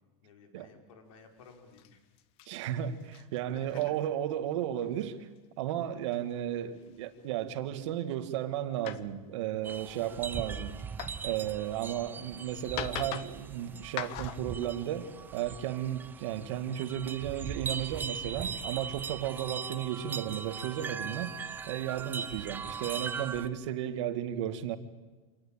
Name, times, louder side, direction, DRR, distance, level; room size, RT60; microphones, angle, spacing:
voice 1, 0.2-2.0 3.5-3.8, left 5 dB, 75° left, 5.1 m, -54 dB
sound 1, 1.1-1.2 1.5-1.9 2.2-2.5 2.8-3.4 3.7-3.9 4.8-5.1 6.1-6.2 6.8-7.3 7.8-7.9 8.3-8.5 8.8-12.0 12.6-13.5 13.8-14.7, left 13 dB, 35° left, 0.9 m, -42 dB
voice 2, 2.5-5.3 5.6-10.8 11.2-24.8, right 11 dB, 60° right, 2.0 m, -34 dB
sound 2, 9.6-23.5, right 6 dB, 10° right, 0.7 m, -40 dB
26.5 x 18.5 x 8.8 m
supercardioid pair, 170°, 17 cm